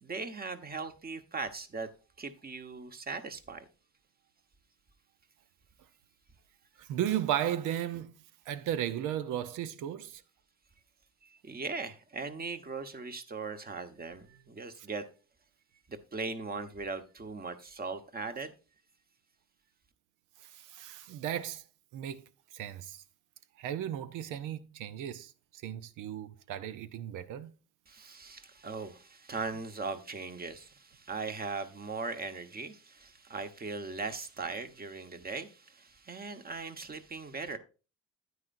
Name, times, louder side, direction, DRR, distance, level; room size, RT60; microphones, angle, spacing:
voice 1, 0.0-1.9 2.2-3.7 11.2-15.1 15.9-18.5 27.9-37.6, right 4 dB, 30° right, 1.2 m, -39 dB
voice 2, 6.8-8.2 8.5-10.2 20.4-21.6 21.9-22.2 22.5-23.0 23.6-27.5, right 11 dB, 90° right, 0.7 m, -35 dB
9.5 x 9.3 x 2.6 m
cardioid pair, 90°, 30 cm